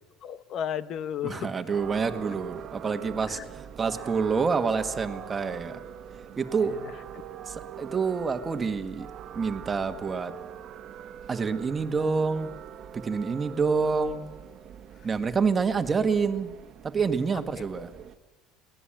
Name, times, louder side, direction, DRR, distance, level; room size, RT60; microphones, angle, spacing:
voice 1, 0.2-1.6 3.3-3.5 6.6-7.2 15.0-15.1 17.3-17.8, left 9 dB, 45° left, 14 dB, 1.1 m, -35 dB
voice 2, 1.2-5.8 6.4-6.8 7.5-9.1 9.3-10.3 11.3-12.5 12.9-14.2 15.0-16.5 16.8-17.9, right 5 dB, 20° right, 7 dB, 1.6 m, -27 dB
sound 1, 1.7-18.2, right 9 dB, 45° right, 1.5 m, -43 dB
23.5 x 18.5 x 9.0 m, 1.2 s
cardioid pair, 135°, 0 cm